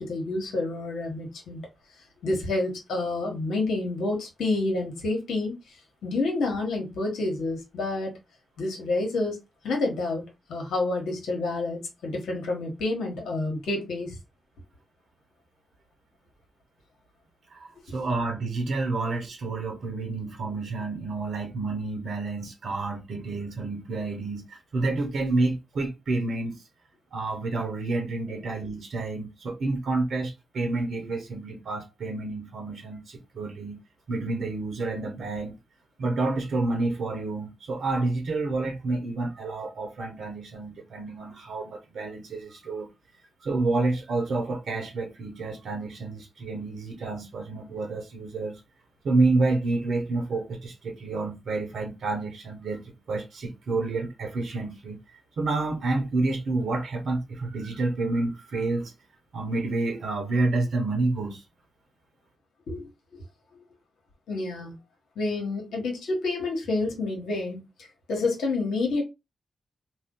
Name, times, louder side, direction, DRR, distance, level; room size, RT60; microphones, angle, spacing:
voice 1, 0.0-1.6 2.2-5.6 6.0-8.1 8.6-9.4 9.6-10.2 10.5-14.2 62.7-62.8 63.5-63.6 64.3-64.7 65.2-67.6 68.1-69.0, left 2 dB, 80° left, 1.1 m, -28 dB
voice 2, 17.5-26.6 27.1-33.8 34.1-35.6 36.0-42.9 43.4-48.6 49.0-58.9 59.3-61.4, right 3 dB, 75° right, 0.8 m, -29 dB
2.7 x 2.2 x 3.6 m
supercardioid pair, 45°, 0 cm